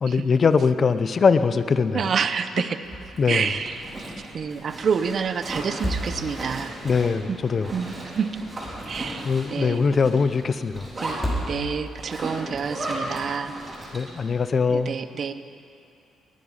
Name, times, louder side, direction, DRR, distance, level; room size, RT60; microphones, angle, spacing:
voice 1, 0.0-2.0 3.2-3.5 6.8-7.7 9.2-10.9 13.9-14.9, left 5 dB, 45° left, 12 dB, 0.7 m, -21 dB
voice 2, 1.9-2.8 3.3-6.8 7.3-7.4 7.7-8.3 8.9-9.8 11.0-13.5 14.7-15.3, right 6 dB, 50° right, 11 dB, 0.7 m, -28 dB
sound 1, 2.8-3.3 3.6-3.7 5.6-6.6 8.3-9.2 11.1-12.0, equal, 20° left, 3.9 m, -31 dB
Zipper (clothing), 3.0-14.2, right 1 dB, 30° right, 4.3 m, -36 dB
20.5 x 9.5 x 5.6 m, 2.5 s
cardioid pair, 90°, 0 cm